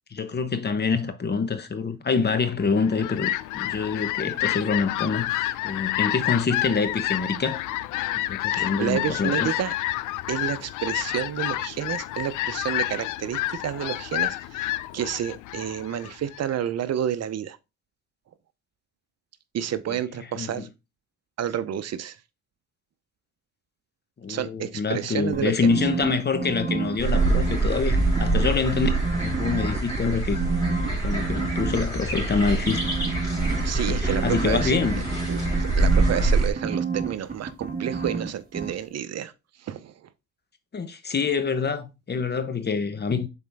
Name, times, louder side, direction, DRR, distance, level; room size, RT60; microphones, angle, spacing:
voice 1, 0.1-7.6 8.1-9.5 19.9-20.0 20.3-20.7 24.2-29.0 29.4-30.4 30.9-32.8 33.1-33.2 33.6-35.1 40.7-43.3, left 5 dB, 35° left, 1.0 m, -26 dB
Fowl, 2.6-16.6, left 15 dB, 80° left, 0.5 m, -29 dB
voice 2, 8.5-9.7 10.3-17.6 19.5-20.7 21.4-22.2 24.3-25.7 33.6-34.8 35.3-39.3 39.6-39.9, right 10 dB, 55° right, 0.7 m, -30 dB
sound 1, 25.3-27.6 27.9-30.0 30.3-31.8 32.6-38.3 38.5-38.7, right 4 dB, 30° right, 1.5 m, -30 dB
sound 2, 27.0-36.5, right 2 dB, 10° left, 3.7 m, -25 dB
7.1 x 4.3 x 3.5 m
cardioid pair, 90°, 30 cm